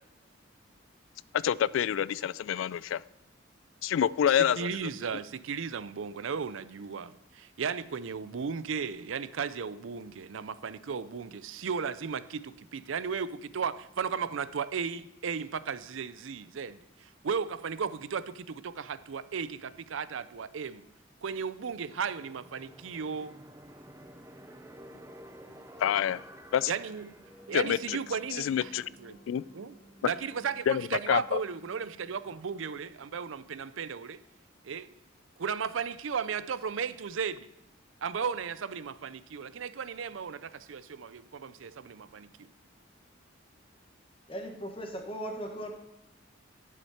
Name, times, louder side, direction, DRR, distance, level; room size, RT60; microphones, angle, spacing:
voice 1, 1.4-3.0 3.8-4.7 25.8-26.2 26.5-26.7 27.5-28.0 28.4-28.8 29.3-29.4 30.7-30.8 31.1-31.4, left 9 dB, 85° left, 0.3 m, -27 dB
voice 2, 4.3-20.8 21.2-23.3 26.7-27.1 27.5-28.7 29.0-29.2 29.5-29.8 30.0-34.2 34.6-34.9 35.4-37.5 38.0-42.3, right 6 dB, 85° right, 0.5 m, -35 dB
sound 1, 21.8-32.5, right 1 dB, 15° right, 0.5 m, -54 dB
sound 2, 24.0-32.7, equal, 65° left, 2.2 m, -58 dB
voice 3, 44.3-45.7, equal, 30° left, 1.4 m, -38 dB
11.5 x 6.6 x 4.3 m
head